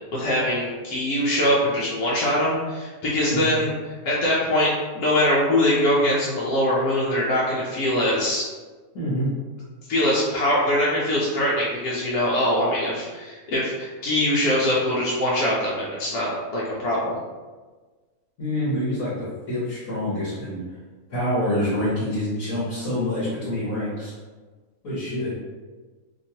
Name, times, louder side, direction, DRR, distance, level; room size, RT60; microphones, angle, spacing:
voice 1, 0.1-3.7 4.0-8.4 9.9-17.2, left 1 dB, 85° left, -6 dB, 1.2 m, -22 dB
voice 2, 8.9-9.3 18.4-20.6 21.1-24.1 24.8-25.3, left 1 dB, 70° left, -11 dB, 1.5 m, -26 dB
3.0 x 2.9 x 2.8 m, 1.3 s
omnidirectional pair, 1.6 m